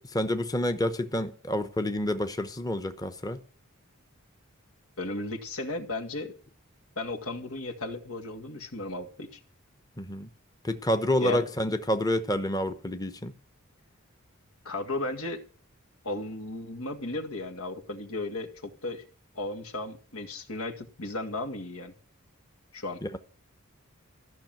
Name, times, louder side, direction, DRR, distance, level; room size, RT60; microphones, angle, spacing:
voice 1, 0.1-3.4 10.0-10.3 10.6-13.3 23.0-23.2, left 1 dB, 15° left, 0.9 m, -28 dB
voice 2, 5.0-6.3 7.0-9.4 11.2-11.5 14.7-15.4 16.0-19.0 19.4-21.9 22.7-23.0, left 2 dB, 85° left, 2.0 m, -35 dB
14.5 x 6.3 x 9.2 m
head